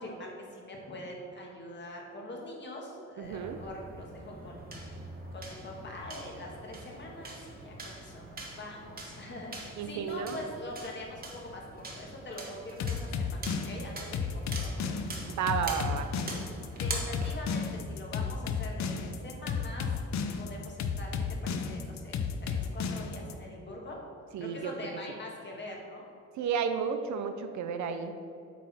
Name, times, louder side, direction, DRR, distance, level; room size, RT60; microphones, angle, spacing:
voice 1, 0.0-4.9 5.3-15.2 16.8-19.9 20.4-21.1 21.4-24.0 24.4-26.1, left 1 dB, 35° left, -1 dB, 1.7 m, -44 dB
sound 1, 3.2-18.0, right 2 dB, 30° right, 1.4 m, -44 dB
voice 2, 3.2-3.6 9.8-10.4 15.3-16.1 24.3-24.7 26.4-28.1, right 7 dB, 70° right, 8 dB, 0.6 m, -32 dB
sound 2, 12.8-23.3, left 6 dB, 65° left, 0.6 m, -32 dB
8.2 x 4.4 x 4.3 m, 2.5 s
cardioid pair, 90°, 30 cm